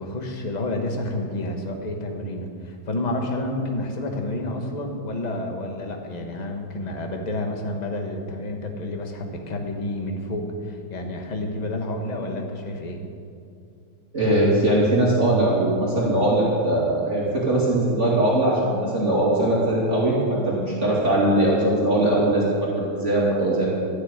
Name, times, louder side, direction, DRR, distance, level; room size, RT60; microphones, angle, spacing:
voice 1, 0.0-13.0, left 1 dB, 25° left, 2 dB, 1.3 m, -29 dB
voice 2, 14.1-23.8, right 1 dB, 35° right, -6 dB, 2.8 m, -21 dB
13.5 x 7.4 x 9.8 m, 2.4 s
omnidirectional pair, 2.3 m